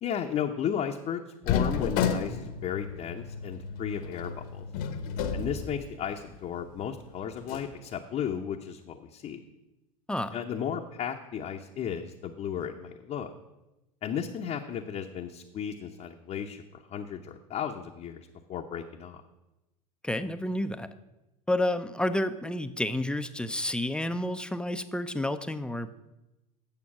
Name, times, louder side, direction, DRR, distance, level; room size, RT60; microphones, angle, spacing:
voice 1, 0.0-4.7 5.3-9.4 10.3-13.3 14.0-19.2, left 8 dB, 40° left, 1 dB, 0.7 m, -34 dB
sound 1, 1.4-6.3 6.7-6.8 7.4-7.7, left 7 dB, 65° left, 1.0 m, -32 dB
voice 2, 20.0-20.9 21.5-25.9, left 1 dB, 5° left, 10 dB, 0.5 m, -30 dB
8.7 x 6.9 x 5.9 m, 0.99 s
hypercardioid pair, 95°, 19 cm